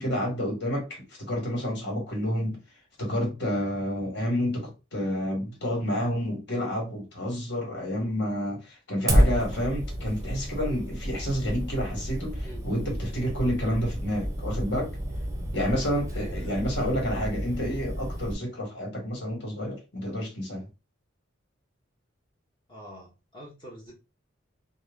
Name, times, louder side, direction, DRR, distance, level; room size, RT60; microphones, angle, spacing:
voice 1, 0.0-2.6 3.0-14.9 15.5-20.7, equal, 60° left, 1.6 m, -29 dB
Fire, 9.1-18.3, equal, 15° right, 0.7 m, -30 dB
voice 2, 16.1-16.6 22.7-23.9, equal, 25° left, 0.9 m, -45 dB
3.1 x 2.2 x 3.6 m
head